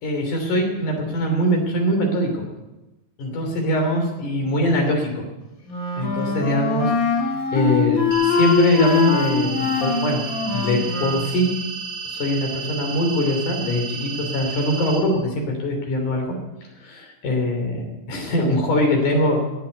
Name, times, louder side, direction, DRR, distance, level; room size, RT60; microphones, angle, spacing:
voice 1, 0.0-2.4 3.2-5.2 6.0-6.9 7.2-10.2 10.5-11.5 12.0-16.4 16.8-19.5, equal, 80° left, 2 dB, 4.6 m, -22 dB
Wind instrument woodwind instrument, 5.7-11.3, left 5 dB, 35° left, 1.7 m, -23 dB
sound 1, 8.1-15.0, right 5 dB, 65° right, 7.0 m, -33 dB
17.5 x 7.6 x 9.5 m, 1.0 s
omnidirectional pair, 3.6 m